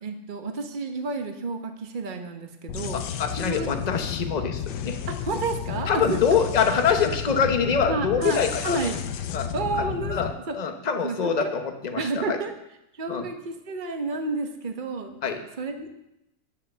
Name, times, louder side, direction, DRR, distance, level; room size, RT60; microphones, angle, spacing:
voice 1, 0.0-3.0 3.4-3.7 5.2-6.2 7.9-9.0 9.5-10.2 10.5-10.6 11.0-11.5 12.0-12.5 13.0-15.2 15.6-15.9, right 3 dB, 35° right, 5 dB, 1.0 m, -30 dB
sound 1, 2.7-10.3, left 9 dB, 70° left, 1.2 m, -32 dB
voice 2, 2.9-5.0 5.9-8.8 9.3-9.5 10.1-12.4 13.1-13.3 15.2-15.5, left 6 dB, 35° left, 6 dB, 0.7 m, -25 dB
10.0 x 7.3 x 6.9 m, 0.86 s
omnidirectional pair, 2.1 m